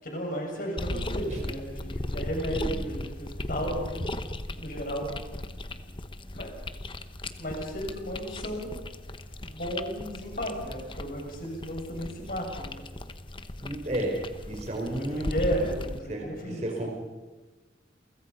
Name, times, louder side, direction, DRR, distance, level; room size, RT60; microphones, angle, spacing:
voice 1, 0.0-4.1 4.6-5.1 6.3-6.5 7.4-8.8 9.4-12.9 14.8-16.6, equal, 50° left, 1 dB, 6.8 m, -34 dB
sound 1, 0.8-16.0, left 1 dB, 25° left, 1.0 m, -37 dB
voice 2, 13.6-14.2 14.5-15.3 16.1-16.9, right 1 dB, 35° right, 1 dB, 4.4 m, -32 dB
29.0 x 24.5 x 5.6 m, 1.3 s
head